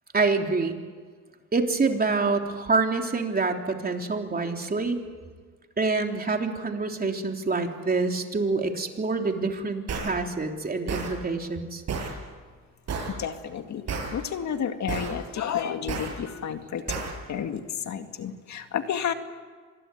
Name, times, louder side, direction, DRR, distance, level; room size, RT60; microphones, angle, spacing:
voice 1, 0.1-0.8 1.5-5.0 5.8-11.8, right 3 dB, 30° right, 3 dB, 3.5 m, -26 dB
sound 1, 9.9-10.1 10.9-11.1 11.9-12.1 12.9-13.1 13.9-14.1 14.9-15.1 15.9-16.1 16.9-17.1, right 5 dB, 60° right, 7.3 m, -30 dB
voice 2, 13.2-13.8 14.1-16.8 17.3-19.1, left 8 dB, 65° left, 7 dB, 2.2 m, -31 dB
26.5 x 21.0 x 9.3 m, 1.5 s
cardioid pair, 90°, 30 cm